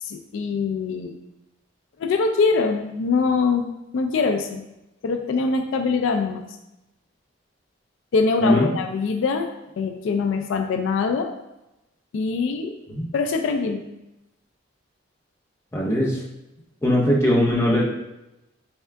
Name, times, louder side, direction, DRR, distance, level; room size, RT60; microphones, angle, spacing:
voice 1, 0.0-1.1 2.0-4.6 5.0-6.4 8.1-9.5 9.8-11.3 12.1-12.7 13.1-13.8, left 4 dB, 75° left, 6 dB, 0.3 m, -23 dB
voice 2, 15.7-16.2 16.8-17.9, equal, 15° left, -4 dB, 0.7 m, -20 dB
4.5 x 3.5 x 2.2 m, 0.93 s
head